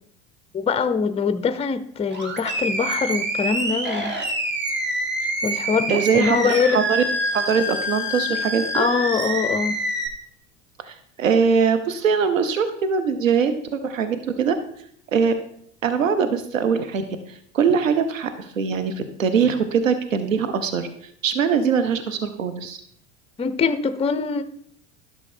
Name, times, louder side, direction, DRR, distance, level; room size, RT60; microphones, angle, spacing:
voice 1, 0.5-4.1 5.4-6.9 8.7-9.8 23.4-24.4, left 5 dB, 15° left, 12 dB, 0.6 m, -23 dB
Animal, 2.1-10.1, right 1 dB, 30° right, 2.0 m, -26 dB
voice 2, 5.9-7.0 7.3-8.9 10.8-14.5 15.1-15.3 15.8-17.0 17.3-22.8, right 6 dB, 90° right, 9 dB, 0.8 m, -22 dB
11.5 x 6.1 x 4.4 m, 0.68 s
hypercardioid pair, 75°, 38 cm